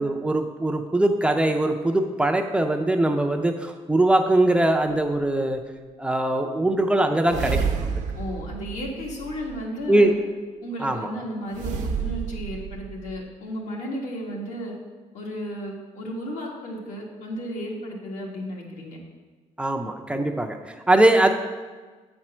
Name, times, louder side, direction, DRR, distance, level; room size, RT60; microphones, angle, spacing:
voice 1, 0.0-5.6 6.0-7.9 9.9-10.1 10.8-11.1 19.6-21.3, right 1 dB, 10° right, 4 dB, 0.4 m, -21 dB
sound 1, 7.2-9.7 11.5-13.2, right 6 dB, 85° right, 0.7 m, -30 dB
voice 2, 8.1-10.1 10.6-14.8 15.1-19.0, equal, 80° left, -1 dB, 1.7 m, -34 dB
8.5 x 4.4 x 6.0 m, 1.4 s
cardioid pair, 160°, 12 cm